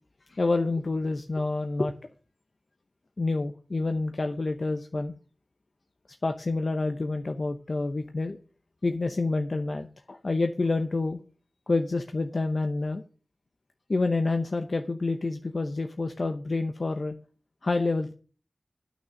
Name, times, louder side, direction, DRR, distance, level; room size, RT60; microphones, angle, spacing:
voice 1, 0.3-1.9 3.2-5.1 6.2-8.4 8.8-11.2 11.7-13.0 13.9-17.1 17.6-18.1, left 3 dB, 60° left, 6 dB, 0.8 m, -28 dB
9.5 x 6.2 x 7.6 m, 0.38 s
wide cardioid pair, 75°, 0 cm